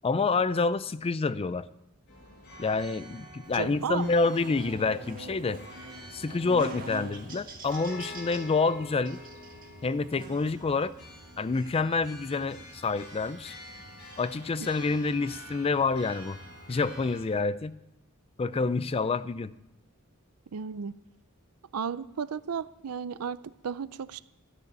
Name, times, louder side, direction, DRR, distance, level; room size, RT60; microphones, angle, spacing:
voice 1, 0.0-1.7 2.6-5.6 6.1-9.2 9.8-10.9 11.4-13.5 14.2-16.4 16.7-17.8 18.4-19.5, left 4 dB, 25° left, 0.4 m, -28 dB
sound 1, 2.1-17.2, left 1 dB, 50° left, 5.2 m, -48 dB
Buzz, 3.4-17.4, right 1 dB, 40° right, 1.8 m, -47 dB
voice 2, 3.5-4.1 20.5-21.0 21.7-24.2, right 6 dB, 90° right, 0.5 m, -34 dB
12.5 x 6.7 x 8.7 m
head